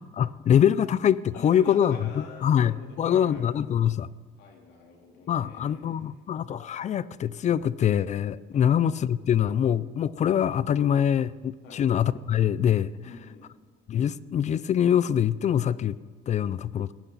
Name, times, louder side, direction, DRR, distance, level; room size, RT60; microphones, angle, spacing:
voice 1, 0.0-4.1 5.3-12.9 13.9-16.0 16.3-16.9, left 9 dB, 45° left, 18 dB, 0.5 m, -24 dB
voice 2, 1.3-3.4 4.4-6.2 8.5-8.7 11.6-11.9 13.0-13.5 16.5-16.8, left 4 dB, 80° left, 0 dB, 3.6 m, -45 dB
20.5 x 15.0 x 4.1 m, 1.4 s
cardioid pair, 110°, 17 cm